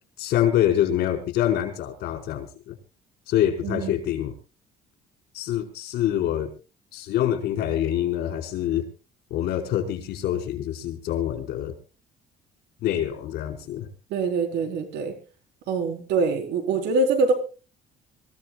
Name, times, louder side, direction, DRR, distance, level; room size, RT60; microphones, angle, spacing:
voice 1, 0.2-2.8 3.3-4.3 5.3-6.5 6.9-8.8 9.3-11.7 12.8-13.9, left 11 dB, 75° left, 5 dB, 4.9 m, -25 dB
voice 2, 3.6-3.9 14.1-15.1 15.7-17.3, right 3 dB, 80° right, 5 dB, 4.1 m, -24 dB
25.5 x 16.0 x 2.4 m, 0.33 s
cardioid pair, 110°, 17 cm